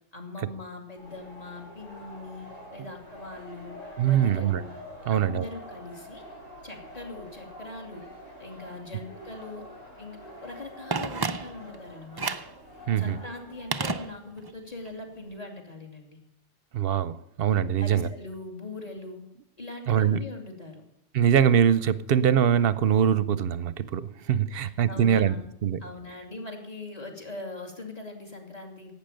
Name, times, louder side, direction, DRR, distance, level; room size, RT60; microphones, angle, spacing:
voice 1, 0.1-3.7 4.0-4.7 5.1-6.3 6.6-8.0 8.4-9.7 10.0-12.4 13.0-16.2 17.8-19.2 19.6-20.9 24.5-25.5 25.8-28.9, left 2 dB, 30° left, 2 dB, 2.5 m, -41 dB
sound 1, 1.0-14.0, equal, 85° left, 5.1 m, -46 dB
voice 2, 4.0-4.6 5.1-5.5 12.9-13.2 16.7-18.1 19.9-20.2 21.1-25.3 25.6-25.8, right 9 dB, 55° right, 16 dB, 0.8 m, -23 dB
Telephone, 10.9-11.8 12.2-12.6 13.7-14.6 14.9-15.0, right 3 dB, 35° right, 0.3 m, -31 dB
12.0 x 8.7 x 8.9 m, 0.78 s
omnidirectional pair, 1.3 m